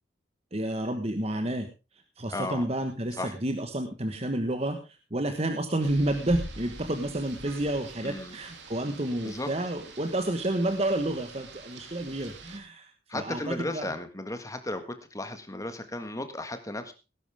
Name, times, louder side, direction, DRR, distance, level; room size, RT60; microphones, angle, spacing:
voice 1, 0.5-1.7 2.2-13.9, right 1 dB, 35° right, 6 dB, 1.4 m, -30 dB
voice 2, 2.3-2.7 3.2-3.4 8.0-8.4 9.2-9.5 13.1-16.9, left 2 dB, 20° left, 8 dB, 1.7 m, -35 dB
Rain, 5.8-12.6, right 2 dB, 70° right, 2.8 m, -45 dB
18.0 x 11.0 x 3.6 m, 0.29 s
head